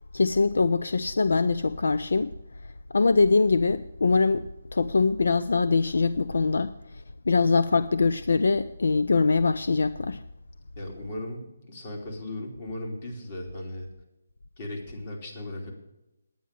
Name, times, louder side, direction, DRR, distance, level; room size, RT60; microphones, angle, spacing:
voice 1, 0.1-2.3 2.9-4.5 4.7-10.2, left 4 dB, 75° left, 0.4 m, -23 dB
voice 2, 10.8-13.9 14.6-15.7, left 1 dB, 40° left, 2.9 m, -37 dB
9.7 x 9.3 x 7.5 m
hypercardioid pair, 160°, 0 cm